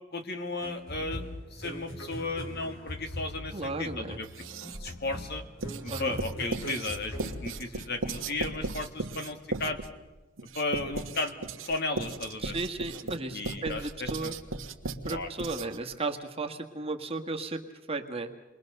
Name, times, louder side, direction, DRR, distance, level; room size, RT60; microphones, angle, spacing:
voice 1, 0.1-1.2 1.5-4.3 4.7-5.4 5.8-9.8 10.5-12.6 13.3-14.3 15.0-15.3, left 2 dB, 55° left, 6 dB, 2.3 m, -35 dB
sound 1, 0.6-8.2, left 1 dB, 85° left, 5.3 m, -41 dB
voice 2, 3.5-4.2 5.9-6.2 12.4-14.3 15.0-17.6 17.9-18.3, right 3 dB, 30° right, 4 dB, 1.7 m, -34 dB
Writing, 4.2-5.0 5.6-15.9, right 3 dB, 80° right, 1.5 m, -37 dB
29.0 x 22.0 x 6.6 m, 1.1 s
head